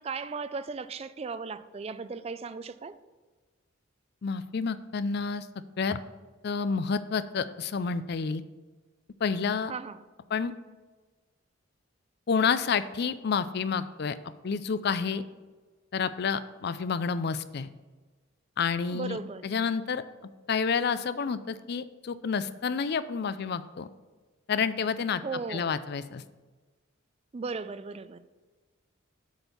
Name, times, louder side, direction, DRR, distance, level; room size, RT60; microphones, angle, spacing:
voice 1, 0.0-3.0 9.7-10.0 18.9-19.4 25.2-25.8 27.3-28.2, right 4 dB, 30° right, 0.3 m, -36 dB
voice 2, 4.2-5.5 5.8-6.0 6.4-8.4 9.2-9.7 10.3-10.5 12.3-14.2 14.4-15.2 15.9-17.7 18.6-20.0 20.5-23.9 24.5-25.2 25.5-26.2, left 5 dB, 50° left, 0.4 m, -29 dB
8.0 x 4.4 x 6.8 m
head